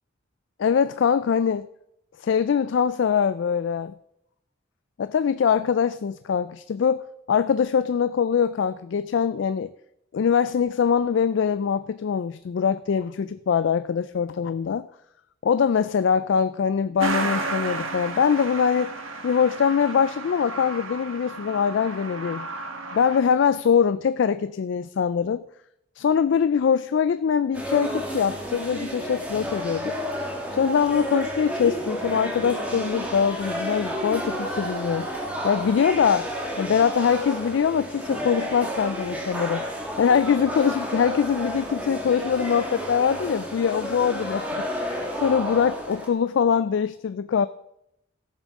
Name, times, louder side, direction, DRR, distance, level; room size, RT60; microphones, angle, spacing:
voice 1, 0.6-1.7 2.2-3.9 5.0-9.7 10.1-14.9 15.4-18.9 19.2-22.5 22.9-25.4 26.0-29.9 30.5-35.1 35.4-36.3 36.6-39.7 40.0-47.5, left 7 dB, 60° left, 14 dB, 0.3 m, -23 dB
Truck, 17.0-23.2, right 3 dB, 80° right, 1.3 m, -32 dB
sound 1, 27.5-46.1, equal, 5° right, 1.7 m, -31 dB
16.5 x 7.2 x 3.7 m, 0.79 s
head